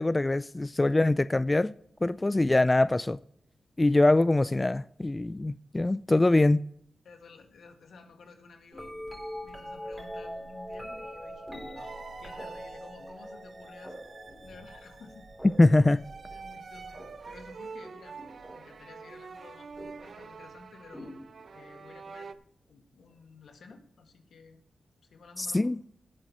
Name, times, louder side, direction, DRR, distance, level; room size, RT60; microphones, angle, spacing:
voice 1, 0.0-1.7 2.0-3.2 3.8-6.6 15.6-16.0 25.4-25.8, left 2 dB, 20° left, 0.3 m, -23 dB
voice 2, 7.0-9.0 9.4-14.0 14.4-15.3 15.7-15.9 16.3-17.0 17.2-18.2 18.5-21.2 21.5-22.3 22.7-24.6 25.0-25.7, left 4 dB, 80° left, 2.0 m, -53 dB
sound 1, 8.7-18.8 19.8-20.2 20.9-21.9 23.7-23.8, equal, ahead, 3.3 m, -44 dB
sound 2, 11.7-22.3, right 5 dB, 60° right, 0.7 m, -47 dB
17.5 x 8.7 x 3.1 m
cardioid pair, 75°, 0 cm